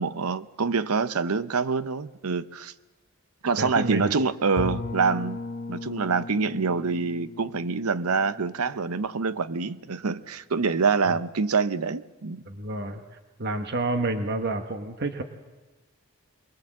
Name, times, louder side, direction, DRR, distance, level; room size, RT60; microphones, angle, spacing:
voice 1, 0.0-2.7 3.4-5.4 5.7-12.4, right 4 dB, 80° right, 0.8 m, -26 dB
voice 2, 3.6-4.1 11.1-11.2 12.5-13.0 13.4-15.2, right 2 dB, 50° right, 1.2 m, -29 dB
Bowed string instrument, 4.6-9.4, left 2 dB, 40° left, 1.5 m, -37 dB
24.0 x 21.0 x 7.6 m
head